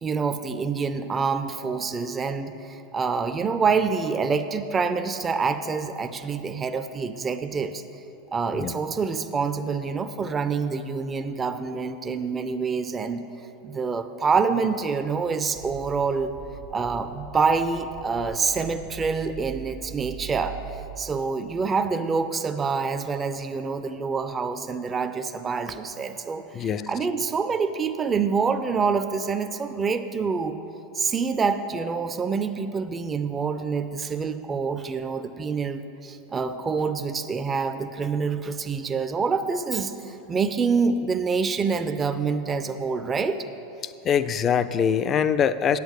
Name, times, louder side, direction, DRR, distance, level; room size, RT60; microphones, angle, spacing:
voice 1, 0.0-7.8 8.3-13.2 13.6-16.3 16.7-20.6 21.0-30.6 31.0-43.4, right 5 dB, 25° right, 9 dB, 0.5 m, -26 dB
sound 1, 15.5-21.0, right 7 dB, 65° right, 1.1 m, -41 dB
voice 2, 26.5-26.9 43.8-45.8, left 8 dB, 35° left, 13 dB, 0.4 m, -23 dB
8.3 x 8.0 x 6.4 m, 2.8 s
hypercardioid pair, 95°, 0 cm